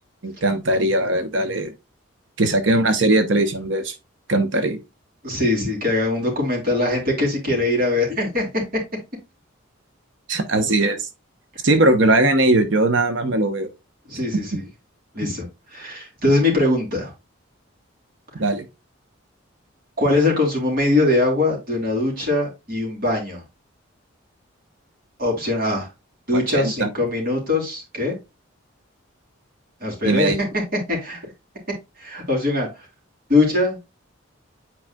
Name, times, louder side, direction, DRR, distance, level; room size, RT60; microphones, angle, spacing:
voice 1, 0.2-1.7 2.4-3.9 4.3-4.8 10.3-11.1 11.6-13.7 18.4-18.6 26.3-26.9 30.0-30.4, right 2 dB, 65° right, 0.9 m, -19 dB
voice 2, 5.2-8.6 14.1-14.6 15.1-17.1 20.0-23.4 25.2-25.9 26.3-28.2 29.8-31.3 32.0-32.9 33.3-33.8, left 2 dB, 45° right, 3.4 m, -22 dB
9.0 x 4.7 x 2.2 m
head